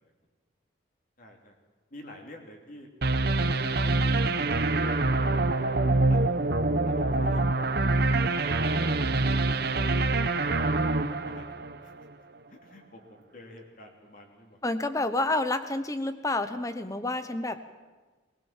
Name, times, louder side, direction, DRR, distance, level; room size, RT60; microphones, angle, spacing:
voice 1, 1.2-1.5 1.9-2.9 3.2-4.4 4.8-5.3 6.1-6.4 6.8-7.7 8.4-9.0 9.7-9.8 11.2-11.9 12.5-14.6, left 1 dB, 45° left, 2 dB, 3.0 m, -49 dB
sound 1, 3.0-12.1, right 2 dB, 55° right, 1.0 m, -25 dB
voice 2, 14.6-17.6, left 2 dB, 15° left, 10 dB, 1.0 m, -29 dB
20.0 x 19.5 x 7.4 m, 1.3 s
head